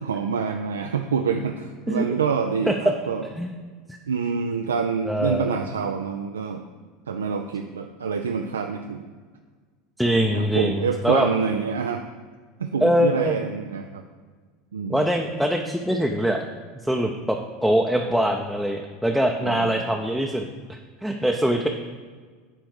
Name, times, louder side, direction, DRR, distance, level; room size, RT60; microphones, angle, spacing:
voice 1, 0.0-3.3 4.1-6.6 7.1-9.1 10.3-12.0 12.6-14.0 14.7-15.1 19.4-19.8, right 6 dB, 80° right, 5 dB, 0.4 m, -27 dB
voice 2, 5.0-5.5 10.0-11.3 12.8-13.3 14.9-16.4 16.8-21.7, equal, ahead, 1 dB, 0.6 m, -23 dB
9.2 x 3.4 x 6.4 m, 1.5 s
hypercardioid pair, 80°, 0 cm